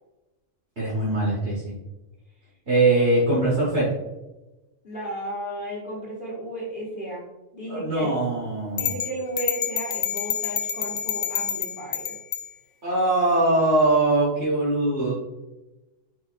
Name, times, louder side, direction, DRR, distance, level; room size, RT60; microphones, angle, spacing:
voice 1, 0.8-1.7 2.7-3.9 7.7-9.0 12.8-15.1, right 2 dB, 60° right, -8 dB, 1.7 m, -22 dB
voice 2, 4.8-7.2 7.5-8.2 8.7-12.1, right 1 dB, 45° left, -7 dB, 1.5 m, -33 dB
sound 1, 8.8-12.5, left 9 dB, 60° left, 0.7 m, -28 dB
5.0 x 4.1 x 2.5 m, 1.0 s
omnidirectional pair, 1.3 m